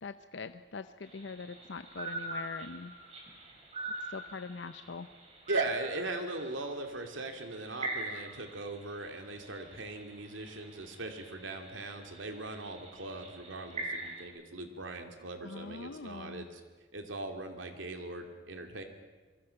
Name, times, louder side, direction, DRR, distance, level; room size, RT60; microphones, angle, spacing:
voice 1, 0.0-2.9 4.1-5.1 15.4-16.5, left 4 dB, 70° left, 11 dB, 0.6 m, -43 dB
sound 1, 1.0-14.2, right 2 dB, 35° right, 4.9 m, -44 dB
voice 2, 5.5-16.6 16.9-18.8, right 2 dB, 85° right, 5 dB, 2.7 m, -39 dB
26.0 x 23.0 x 5.8 m, 1.4 s
head